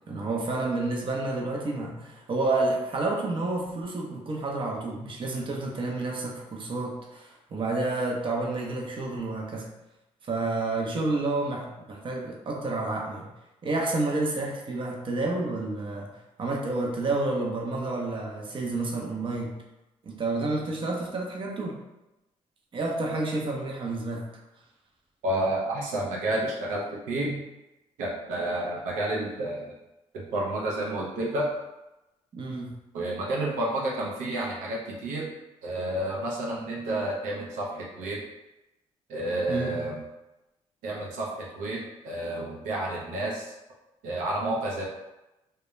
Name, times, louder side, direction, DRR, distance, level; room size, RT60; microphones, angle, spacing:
voice 1, 0.1-9.7 10.3-13.3 13.6-16.1 16.4-19.6 20.0-21.8 22.7-24.3 32.3-32.7 39.5-39.8, right 2 dB, 40° right, -1 dB, 0.6 m, -30 dB
voice 2, 25.2-27.4 28.0-29.7 30.1-31.5 32.9-35.3 35.6-38.2 39.1-40.0 40.8-43.5 44.0-44.9, right 1 dB, 85° right, -3 dB, 0.6 m, -30 dB
2.2 x 2.2 x 2.9 m, 0.97 s
supercardioid pair, 70°, 13 cm